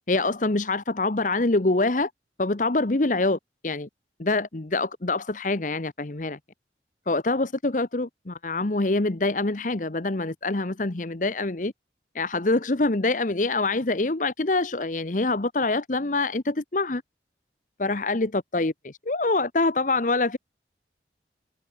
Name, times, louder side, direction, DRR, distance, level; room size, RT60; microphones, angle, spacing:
voice 1, 0.1-2.1 2.4-3.9 4.2-6.4 7.1-11.7 12.1-17.0 17.8-20.4, left 2 dB, 45° left, 1.0 m, -25 dB
head